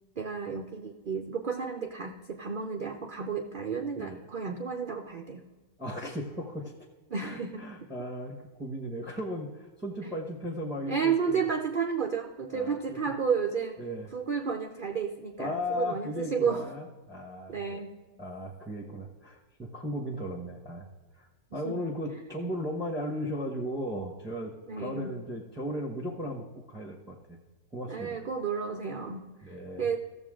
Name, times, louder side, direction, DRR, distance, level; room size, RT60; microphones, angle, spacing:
voice 1, 0.2-5.4 7.1-7.6 10.0-10.1 10.9-13.8 14.1-16.6 17.5-17.9 21.6-21.8 24.7-25.1 27.9-29.3 29.8-30.0, right 6 dB, 85° right, 3 dB, 0.4 m, -32 dB
voice 2, 5.8-6.7 7.2-11.5 12.5-13.1 13.8-14.1 15.4-17.8 18.2-20.9 21.2-27.4 27.7-28.2 29.4-29.9, equal, 5° right, -1 dB, 0.8 m, -36 dB
14.5 x 7.1 x 3.7 m, 1.3 s
omnidirectional pair, 1.8 m